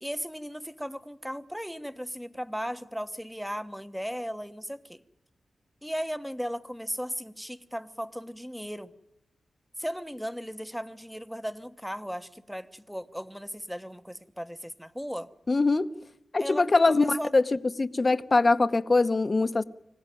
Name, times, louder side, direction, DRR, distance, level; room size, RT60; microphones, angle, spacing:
voice 1, 0.0-5.0 5.8-8.9 9.8-15.3 16.4-17.3, equal, ahead, 1.2 m, -36 dB
voice 2, 15.5-15.9 16.3-17.4 17.8-19.6, left 3 dB, 35° left, 1.0 m, -22 dB
25.5 x 16.5 x 9.3 m
cardioid pair, 70°, 0 cm